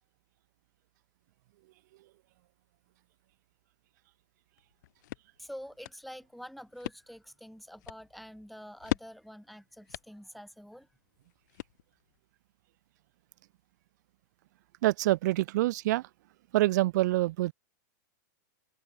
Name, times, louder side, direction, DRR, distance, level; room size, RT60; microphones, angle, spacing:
sound 1, 4.6-12.2, left 16 dB, 65° left, 0.6 m, -42 dB
voice 1, 5.4-10.9, equal, ahead, 3.2 m, -47 dB
voice 2, 14.8-16.0 16.5-17.5, right 17 dB, 65° right, 0.5 m, -26 dB
hypercardioid pair, 135°, 10 cm